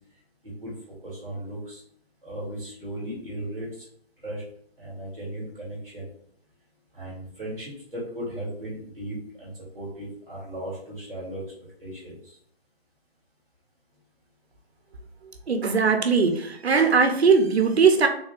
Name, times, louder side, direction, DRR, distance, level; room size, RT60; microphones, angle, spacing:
voice 1, 0.4-1.8 2.2-3.8 4.2-4.4 4.8-6.1 6.9-11.4 11.8-12.4, right 1 dB, 5° left, -18 dB, 0.9 m, -36 dB
voice 2, 15.5-18.1, right 5 dB, 80° right, 5 dB, 0.8 m, -20 dB
3.6 x 2.5 x 3.4 m, 0.67 s
hypercardioid pair, 175°, 32 cm